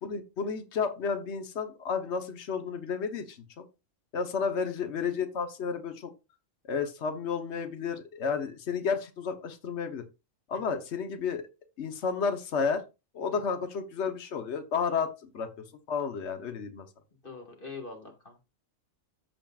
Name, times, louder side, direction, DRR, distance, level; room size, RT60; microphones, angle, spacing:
voice 1, 0.0-3.6 4.1-6.1 6.7-10.0 10.5-11.4 11.8-12.8 13.1-15.5 15.9-16.9, left 5 dB, 55° left, 7 dB, 1.3 m, -32 dB
voice 2, 17.2-18.4, left 4 dB, 40° left, 2 dB, 2.1 m, -43 dB
14.5 x 5.0 x 2.4 m, 0.27 s
omnidirectional pair, 1.4 m